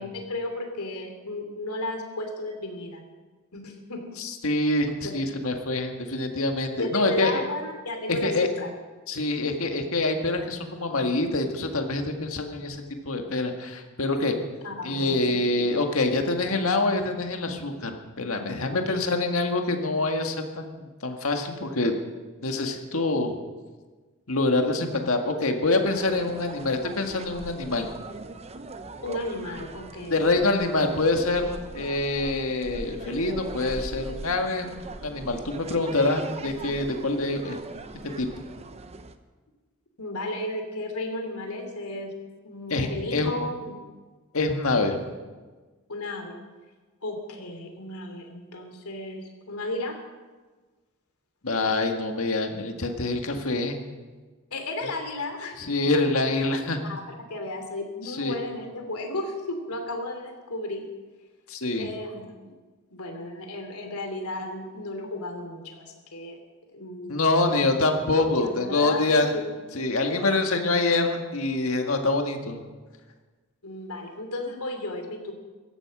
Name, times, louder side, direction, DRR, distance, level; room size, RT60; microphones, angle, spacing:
voice 1, 0.0-3.0 3.5-4.0 5.0-5.1 6.8-8.7 14.6-15.4 18.9-19.0 29.0-30.2 40.0-42.1 42.4-43.8 45.9-46.4 47.0-50.0 54.5-55.6 55.9-56.0 56.8-57.0 57.3-60.8 61.8-62.5 62.9-66.4 66.7-67.6 68.2-69.4 70.1-70.4 73.6-75.3, left 1 dB, 90° left, 4 dB, 2.9 m, -34 dB
voice 2, 4.2-7.4 8.1-8.5 9.1-12.8 13.1-14.4 14.8-21.9 22.4-23.4 24.3-27.9 30.1-34.7 35.0-37.6 38.0-38.3 42.7-43.3 44.3-45.0 51.4-53.8 55.6-56.8 58.1-58.4 61.5-61.9 67.1-69.3 69.7-72.6, left 2 dB, 70° left, 4 dB, 1.9 m, -25 dB
sound 1, 25.8-39.2, right 2 dB, 30° right, 0.8 m, -40 dB
16.0 x 13.5 x 6.1 m, 1.3 s
head